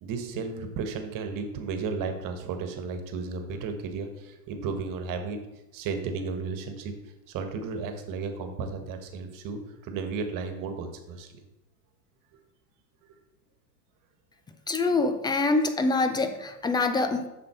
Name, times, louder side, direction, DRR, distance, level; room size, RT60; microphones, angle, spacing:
voice 1, 0.0-5.4 5.7-6.9 7.3-11.3, right 4 dB, 40° right, 6 dB, 1.5 m, -34 dB
voice 2, 14.7-17.3, left 3 dB, 10° left, 8 dB, 0.4 m, -25 dB
7.7 x 6.2 x 4.5 m, 0.95 s
hypercardioid pair, 105°, 50 cm